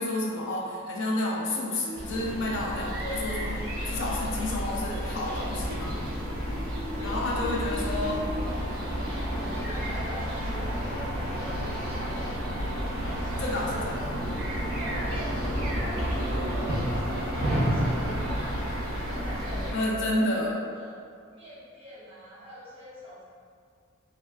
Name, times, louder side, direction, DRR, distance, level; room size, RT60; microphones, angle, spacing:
voice 1, 0.0-6.0 7.0-8.2 13.4-14.1 19.7-20.6, left 1 dB, 60° left, -3 dB, 0.4 m, -30 dB
sound 1, 1.9-19.7, equal, 45° right, 0.6 m, -31 dB
sound 2, 3.8-19.9, equal, 10° left, 0.8 m, -42 dB
voice 2, 4.0-4.3 6.8-8.2 9.4-12.3 13.0-14.3 14.8-18.7 19.0-21.0 21.3-23.2, right 1 dB, 25° right, -11 dB, 1.1 m, -44 dB
3.1 x 2.3 x 2.3 m, 2.1 s
head